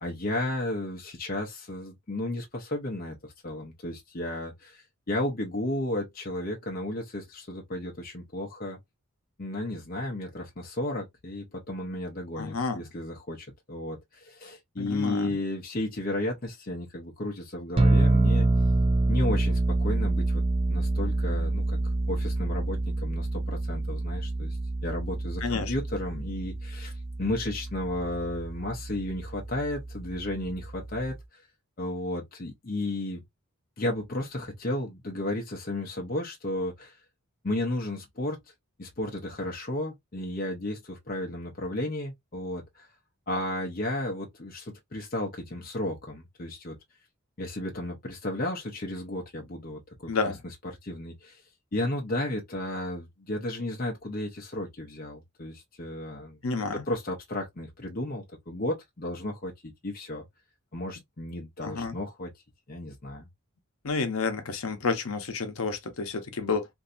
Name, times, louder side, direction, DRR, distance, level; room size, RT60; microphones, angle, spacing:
voice 1, 0.0-8.8 9.4-18.5 19.1-20.4 20.7-31.4 31.8-33.2 33.8-37.0 37.4-38.4 38.8-42.9 43.3-46.8 47.4-50.3 50.8-51.4 51.7-56.4 56.9-60.2 60.7-62.3 62.7-63.3, left 1 dB, 40° left, 0.7 m, -33 dB
voice 2, 12.4-12.9 14.8-15.4 25.4-25.7 50.1-50.4 56.4-56.8 61.6-62.0 63.8-66.7, left 4 dB, 75° left, 0.8 m, -30 dB
sound 1, 17.8-31.2, right 2 dB, 25° right, 0.3 m, -27 dB
3.1 x 2.6 x 2.5 m
head